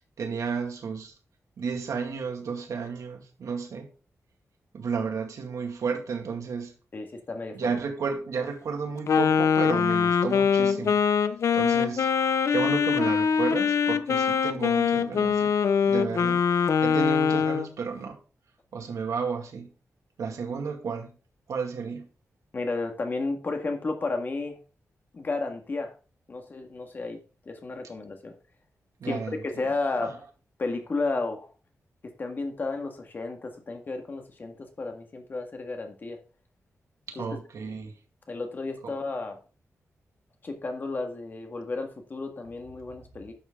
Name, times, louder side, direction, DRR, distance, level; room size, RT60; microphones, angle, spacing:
voice 1, 0.2-1.1 1.6-3.9 4.7-6.7 7.5-11.0 11.5-12.1 12.5-15.5 15.8-16.4 16.8-18.2 18.7-19.7 20.2-21.1 21.5-22.1 29.0-29.7 30.0-30.1 37.1-37.9 38.8-38.9, right 5 dB, 85° right, 2.1 m, -32 dB
voice 2, 6.9-7.7 22.5-24.6 25.1-25.9 26.3-28.4 29.1-30.2 30.6-31.5 32.0-36.2 37.2-37.3 38.3-39.4 40.4-43.3, left 3 dB, 35° left, 1.8 m, -32 dB
Wind instrument woodwind instrument, 9.1-17.7, left 6 dB, 65° left, 0.7 m, -23 dB
11.0 x 7.1 x 3.8 m
wide cardioid pair, 165°, 5 cm